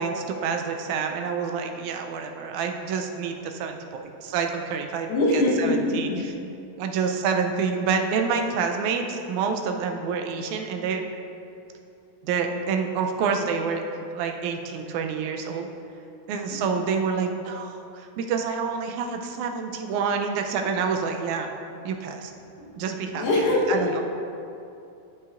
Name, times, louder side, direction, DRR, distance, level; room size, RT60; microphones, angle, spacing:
voice 1, 0.0-6.3 6.7-11.0 12.2-13.8 14.2-15.7 16.3-21.5 21.8-22.3 22.8-23.3 23.7-24.0, right 5 dB, 80° right, 4 dB, 1.9 m, -28 dB
voice 2, 5.1-6.2 16.5-16.8 23.1-24.0, left 2 dB, 60° left, -4 dB, 1.9 m, -23 dB
13.0 x 5.8 x 2.5 m, 2.7 s
omnidirectional pair, 3.6 m